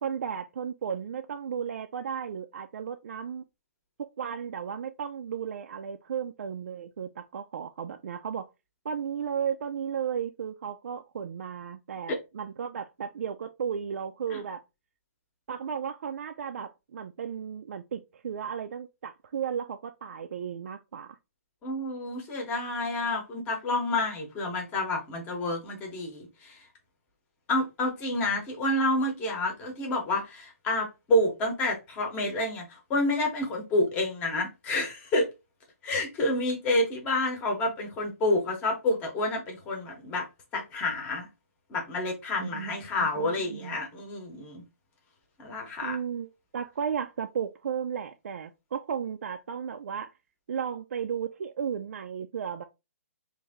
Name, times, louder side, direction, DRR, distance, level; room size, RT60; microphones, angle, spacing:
voice 1, 0.0-3.4 4.0-8.5 8.8-14.6 15.5-21.2 42.4-43.8 45.8-50.1 50.5-52.6, right 7 dB, 60° right, 0.3 m, -34 dB
voice 2, 21.6-26.6 27.5-35.3 35.8-40.3 40.5-41.3 41.7-44.6 45.4-46.0, left 1 dB, 15° left, 0.9 m, -29 dB
3.2 x 2.6 x 3.5 m
hypercardioid pair, 160°, 8 cm